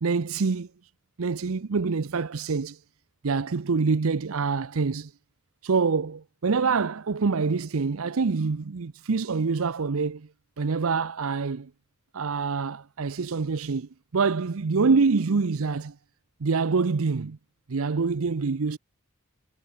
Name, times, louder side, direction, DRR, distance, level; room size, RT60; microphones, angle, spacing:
voice 1, 0.0-0.7 1.2-2.8 3.2-5.1 5.6-10.3 10.6-11.7 12.1-15.9 16.4-17.4 17.7-18.8, right 4 dB, 75° right, 0.6 m, -26 dB
head